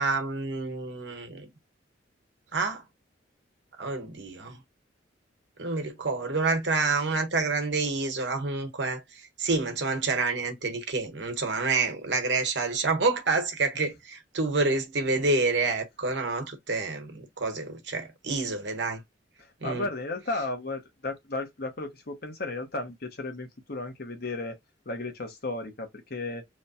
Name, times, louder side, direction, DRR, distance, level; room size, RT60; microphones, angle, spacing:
voice 1, 0.0-1.5 2.5-2.8 3.8-4.6 5.6-9.0 9.4-19.0 19.6-19.8, right 3 dB, 65° right, 1.2 m, -28 dB
voice 2, 19.4-24.6 24.9-26.4, left 2 dB, 50° left, 1.0 m, -34 dB
3.1 x 2.2 x 4.1 m
head